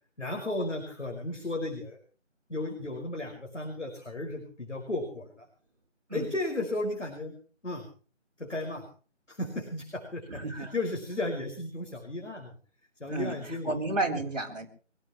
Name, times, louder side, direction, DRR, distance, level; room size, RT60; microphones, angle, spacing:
voice 1, 0.2-2.0 2.5-5.5 6.1-7.3 7.6-7.8 8.4-8.8 9.3-12.5 13.0-13.7 14.1-14.2, left 2 dB, 70° left, 2 dB, 5.4 m, -34 dB
voice 2, 10.3-10.7 13.1-14.7, right 2 dB, 35° right, -4 dB, 3.9 m, -32 dB
24.5 x 17.0 x 3.1 m, 0.39 s
figure-of-eight pair, 180°, 37 cm